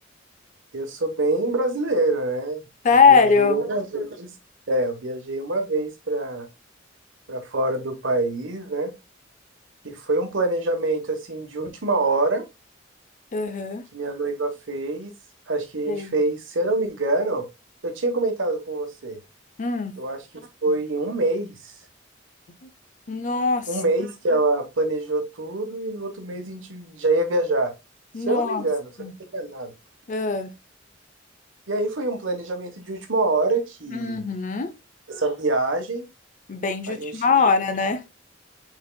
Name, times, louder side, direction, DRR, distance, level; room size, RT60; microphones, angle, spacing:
voice 1, 0.7-2.6 2.9-4.3 4.7-6.5 7.3-8.9 9.8-12.4 13.9-15.1 15.5-17.4 17.8-19.2 20.0-20.2 20.6-21.5 23.7-27.7 28.3-29.7 31.7-34.3 35.1-36.0 36.9-37.4, right 2 dB, 85° right, 1.2 m, -25 dB
voice 2, 2.8-3.6 13.3-13.8 15.9-16.2 19.6-19.9 22.6-22.7 23.1-23.7 28.1-28.6 29.0-29.1 30.1-30.5 33.9-34.7 36.5-38.0, left 5 dB, 40° left, 0.6 m, -21 dB
4.8 x 4.5 x 2.3 m
head